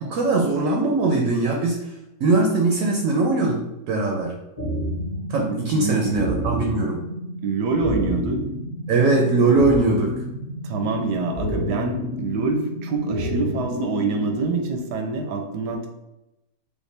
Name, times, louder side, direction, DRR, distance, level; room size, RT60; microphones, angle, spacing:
voice 1, 0.0-1.8 2.2-3.6 3.9-4.3 5.3-7.0 8.9-10.1, right 3 dB, 65° right, 1 dB, 0.8 m, -20 dB
sound 1, 4.6-14.5, equal, 20° left, 0.8 m, -30 dB
voice 2, 5.5-6.3 7.4-8.4 10.6-15.9, right 3 dB, 80° right, 4 dB, 1.2 m, -25 dB
5.0 x 2.2 x 3.2 m, 0.93 s
omnidirectional pair, 1.8 m